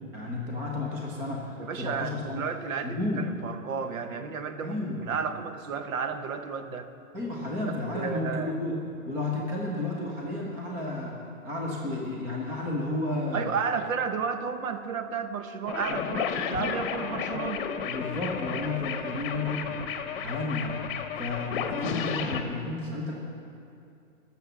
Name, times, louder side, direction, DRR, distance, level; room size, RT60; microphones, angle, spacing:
voice 1, 0.1-2.4 2.8-3.3 4.6-5.1 7.1-8.8 9.1-13.5 15.9-16.0 17.8-19.8 20.2-20.8 21.2-23.2, left 2 dB, 5° right, -2 dB, 0.4 m, -32 dB
voice 2, 1.6-6.9 7.9-8.5 13.3-17.6, right 6 dB, 65° right, 8 dB, 1.0 m, -32 dB
sound 1, 15.7-22.4, left 7 dB, 40° left, 1.0 m, -32 dB
17.0 x 6.9 x 6.0 m, 2.6 s
hypercardioid pair, 140°, 44 cm